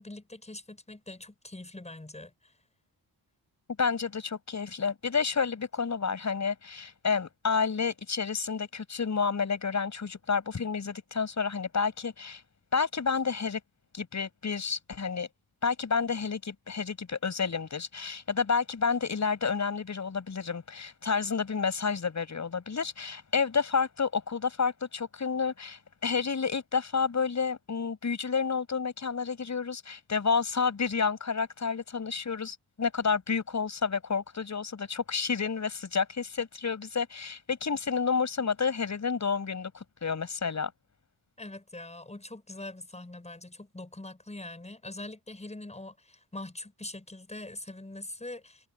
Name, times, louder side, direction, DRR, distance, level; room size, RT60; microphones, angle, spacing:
voice 1, 0.0-2.5 41.4-48.7, left 2 dB, 15° left, 6.4 m, -43 dB
voice 2, 3.8-12.4 12.7-13.6 13.9-15.3 15.6-40.7, left 5 dB, 40° left, 6.9 m, -30 dB
wide cardioid pair, 130°, 42 cm